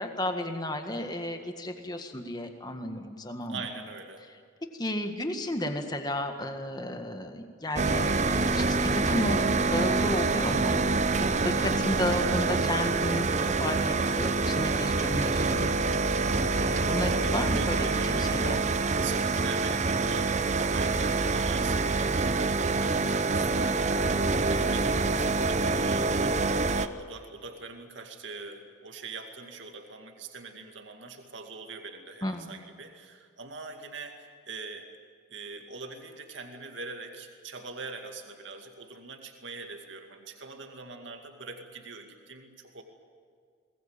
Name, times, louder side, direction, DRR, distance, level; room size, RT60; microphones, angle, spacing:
voice 1, 0.0-3.6 4.7-15.7 16.5-18.6 32.2-32.5, left 1 dB, 20° left, 5 dB, 1.7 m, -33 dB
voice 2, 3.5-4.3 16.7-18.5 19.0-34.9 35.3-42.8, right 4 dB, 65° right, 4 dB, 2.3 m, -43 dB
sound 1, 7.8-26.9, right 3 dB, 35° right, 0.7 m, -26 dB
23.0 x 19.5 x 8.9 m, 2.1 s
head